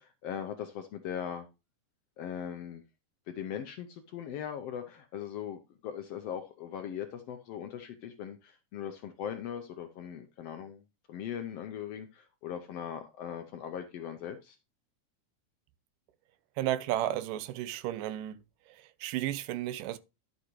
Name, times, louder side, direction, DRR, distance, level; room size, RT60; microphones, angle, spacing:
voice 1, 0.0-1.5 2.2-2.8 3.3-10.8 11.1-14.6, left 9 dB, 80° left, 1.4 m, -40 dB
voice 2, 16.6-18.4 18.8-20.0, right 13 dB, 90° right, 2.3 m, -33 dB
12.0 x 6.5 x 3.1 m
omnidirectional pair, 3.7 m